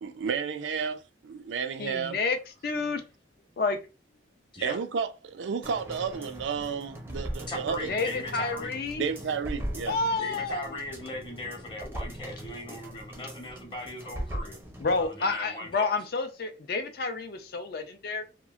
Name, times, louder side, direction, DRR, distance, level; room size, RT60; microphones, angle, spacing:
voice 1, 0.0-2.2 4.6-7.9 9.0-10.0, right 6 dB, 80° right, 0.4 m, -32 dB
voice 2, 1.8-2.4 2.6-3.0 3.6-3.8 7.9-9.0 9.9-10.7 14.8-18.2, left 3 dB, 55° left, 0.4 m, -29 dB
sound 1, 5.6-15.1 15.4-15.5, equal, 10° right, 0.5 m, -40 dB
voice 3, 7.5-8.7 10.2-14.6 14.9-15.9, left 1 dB, 25° left, 0.8 m, -38 dB
2.9 x 2.4 x 2.3 m
head